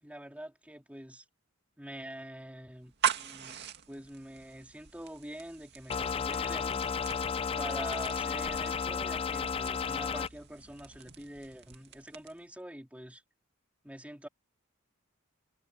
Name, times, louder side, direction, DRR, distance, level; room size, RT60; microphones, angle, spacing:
voice 1, 0.0-1.2 1.8-3.6 3.9-6.8 7.5-13.2 13.8-14.3, right 1 dB, 5° right, 3.6 m, -45 dB
sound 1, 2.8-12.5, right 8 dB, 55° right, 2.2 m, -41 dB
sound 2, 5.9-10.3, left 6 dB, 25° left, 0.4 m, -33 dB
head